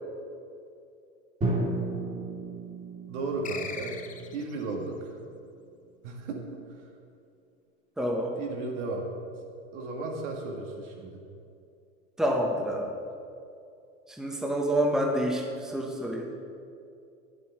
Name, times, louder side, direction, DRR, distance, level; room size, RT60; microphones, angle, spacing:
Drum, 1.4-5.2, right 2 dB, 20° right, 2.2 m, -34 dB
voice 1, 3.1-4.0 4.3-5.2 6.0-6.6 8.4-9.1 9.7-11.2, right 3 dB, 75° right, 1 dB, 1.8 m, -34 dB
sound 1, 3.4-4.6, left 6 dB, 20° left, 0.6 m, -39 dB
voice 2, 8.0-8.3 12.2-13.0 14.1-16.3, equal, ahead, 0 dB, 1.1 m, -28 dB
9.3 x 7.5 x 4.4 m, 2.5 s
hypercardioid pair, 105°, 37 cm